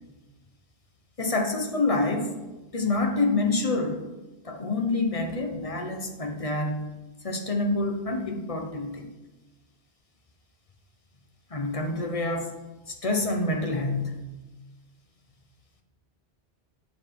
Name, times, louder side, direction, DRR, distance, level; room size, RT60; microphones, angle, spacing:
voice 1, 1.2-2.4 2.7-4.0 4.4-6.9 7.2-9.1 11.5-12.5 12.9-14.2, left 2 dB, 35° left, 3 dB, 1.1 m, -27 dB
8.7 x 5.6 x 4.7 m, 1.1 s
omnidirectional pair, 1.1 m